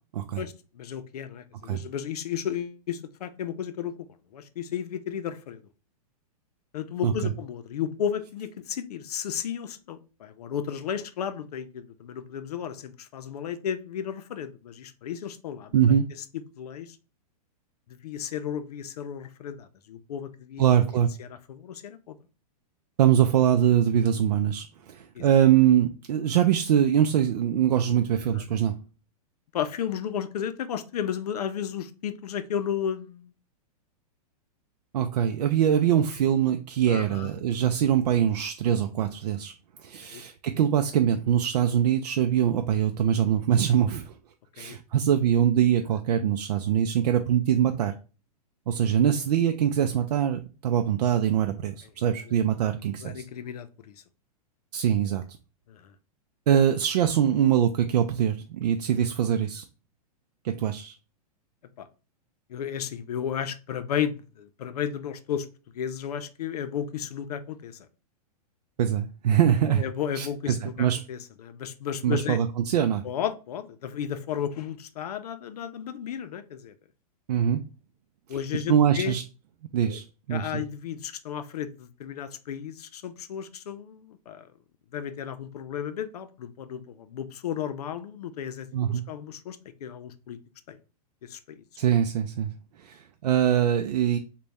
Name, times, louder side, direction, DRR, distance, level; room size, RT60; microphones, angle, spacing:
voice 1, 0.4-3.9 4.3-5.6 6.7-15.7 16.6-17.0 18.0-20.6 21.2-22.2 25.1-25.3 28.3-28.5 29.5-33.3 36.9-37.3 40.0-40.2 44.6-44.8 53.0-54.0 55.7-55.9 61.8-61.9 62.5-65.5 65.7-67.9 69.7-72.4 73.0-76.7 78.3-79.2 79.8-80.0 80.3-84.5 84.9-90.4 90.7-90.8 91.2-91.6, left 9 dB, 75° left, 0.5 m, -33 dB
voice 2, 15.7-16.1 20.6-21.1 23.0-28.8 34.9-39.5 39.8-44.1 44.6-47.9 48.7-53.2 54.7-55.2 56.5-59.6 60.4-61.0 68.8-69.8 70.2-71.0 72.0-73.0 77.3-77.6 78.7-79.2 79.7-80.6 88.7-89.0 91.8-92.5 92.8-94.2, right 9 dB, 85° right, 0.4 m, -23 dB
3.9 x 2.2 x 3.4 m
supercardioid pair, 175°, 20 cm